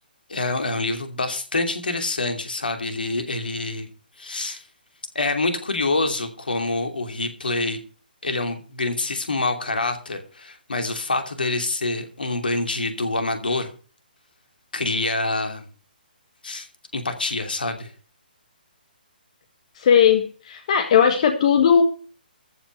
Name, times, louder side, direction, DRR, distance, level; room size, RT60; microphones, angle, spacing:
voice 1, 0.3-3.9 4.2-4.6 5.1-7.8 8.2-13.7 14.7-15.7 16.4-16.7 16.9-17.9, left 2 dB, 70° left, 6 dB, 2.9 m, -26 dB
voice 2, 19.7-21.8, left 8 dB, 40° left, 7 dB, 1.5 m, -17 dB
14.0 x 5.9 x 7.9 m, 0.40 s
figure-of-eight pair, 135°, 5 cm